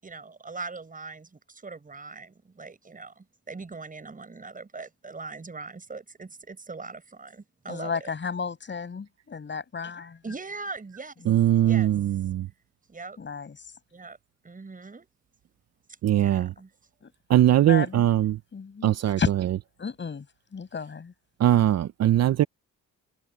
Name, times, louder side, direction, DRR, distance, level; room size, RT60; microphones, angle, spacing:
voice 1, 0.0-8.1 10.2-11.2 11.6-12.3 12.9-13.2 13.9-14.2 14.4-15.1 16.1-16.7, right 3 dB, 25° right, 7.2 m, -41 dB
voice 2, 7.7-10.2 11.2-11.4 13.2-13.7 17.0-17.1 17.6-18.0 18.5-19.3 19.8-20.3 20.5-21.1, left 5 dB, 40° left, 7.5 m, -33 dB
voice 3, 11.3-12.5 16.0-16.5 17.3-18.4 18.8-19.2 21.4-22.4, right 12 dB, 60° right, 0.7 m, -21 dB
cardioid pair, 90°, 30 cm